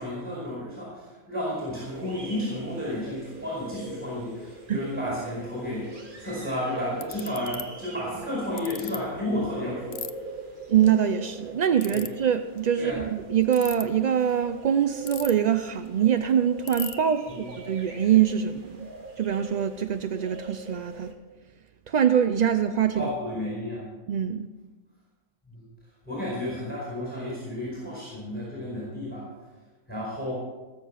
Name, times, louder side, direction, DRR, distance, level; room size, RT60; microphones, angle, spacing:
voice 1, 0.0-10.4 11.9-12.0 12.8-13.0 17.3-17.5 22.9-23.8 25.5-25.7 26.0-29.3 29.9-30.3, left 1 dB, 5° left, -5 dB, 4.7 m, -32 dB
sound 1, 1.8-21.1, right 3 dB, 40° right, 1.7 m, -43 dB
Ratchet pawl, 7.0-7.6 8.6-9.0 9.9-10.1 11.8-12.1 13.4-13.8 15.1-15.5 15.9-16.0 16.2-16.3 16.7-16.9, left 9 dB, 50° left, 0.6 m, -35 dB
voice 2, 10.7-18.9 19.2-21.1 21.9-23.1 24.1-24.5, right 9 dB, 60° right, 9 dB, 0.4 m, -24 dB
18.5 x 7.4 x 5.7 m, 1.2 s
omnidirectional pair, 1.3 m